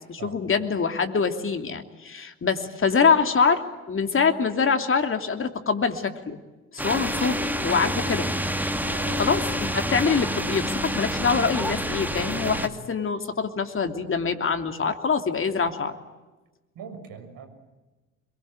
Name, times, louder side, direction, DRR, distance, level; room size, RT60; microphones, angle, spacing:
voice 1, 0.1-3.6 3.9-6.4 6.7-8.3 9.2-12.6 12.9-16.0, left 5 dB, 30° left, 6 dB, 3.0 m, -24 dB
sound 1, 6.8-12.7, equal, 5° right, 2.3 m, -28 dB
voice 2, 8.9-9.4 9.7-9.9 12.4-12.6 16.7-17.5, right 7 dB, 50° right, 7 dB, 6.6 m, -40 dB
26.5 x 23.5 x 9.0 m, 1.2 s
figure-of-eight pair, 55°, 41 cm